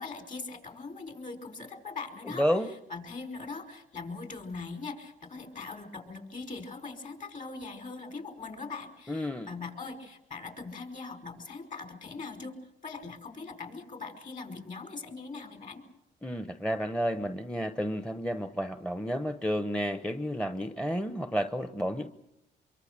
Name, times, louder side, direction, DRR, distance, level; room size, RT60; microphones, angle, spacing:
voice 1, 0.0-15.8, left 4 dB, 40° left, 6 dB, 5.0 m, -41 dB
voice 2, 2.3-2.7 9.1-9.5 16.2-22.1, equal, 5° left, 9 dB, 0.9 m, -31 dB
25.0 x 23.5 x 6.8 m, 0.85 s
cardioid pair, 90°, 20 cm